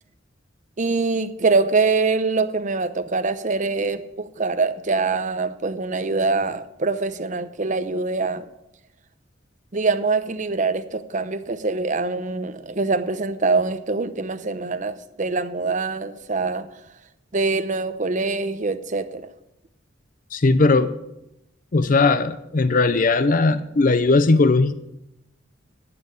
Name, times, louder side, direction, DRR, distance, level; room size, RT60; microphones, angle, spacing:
voice 1, 0.8-8.5 9.7-16.7 17.3-19.3, right 3 dB, 40° right, 10 dB, 0.8 m, -24 dB
voice 2, 20.3-20.9 21.7-24.7, left 3 dB, 45° left, 12 dB, 0.6 m, -18 dB
11.0 x 7.6 x 8.3 m, 0.87 s
head